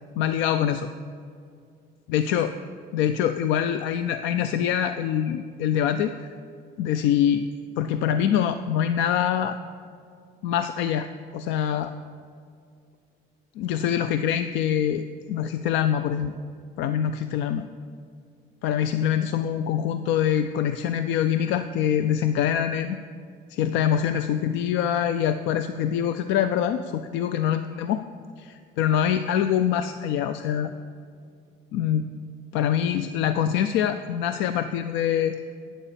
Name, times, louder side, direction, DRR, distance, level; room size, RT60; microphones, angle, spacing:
voice 1, 0.2-0.9 2.1-2.5 2.9-6.1 6.8-7.5 7.8-9.6 10.4-11.1 11.3-11.9 13.6-16.3 16.8-17.7 18.6-23.0 23.5-28.0 28.4-30.7 31.7-32.0 32.5-35.4, left 9 dB, 85° left, 10 dB, 0.4 m, -24 dB
8.9 x 7.1 x 6.8 m, 2.2 s
cardioid pair, 110°, 19 cm